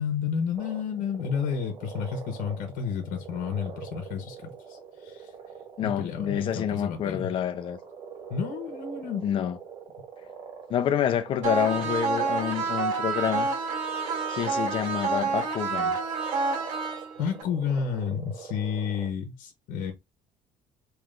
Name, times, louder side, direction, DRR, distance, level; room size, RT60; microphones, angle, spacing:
voice 1, 0.0-5.3 5.8-7.3 8.3-9.2 17.2-19.9, left 7 dB, 70° left, 1.0 m, -31 dB
sound 1, 0.5-19.1, right 6 dB, 40° right, 1.3 m, -43 dB
voice 2, 5.8-7.8 9.2-9.6 10.7-13.5 14.3-16.0, left 9 dB, 40° left, 0.6 m, -28 dB
sound 2, 11.4-17.4, right 5 dB, 70° right, 1.4 m, -28 dB
3.3 x 3.0 x 3.7 m
cardioid pair, 180°, 14 cm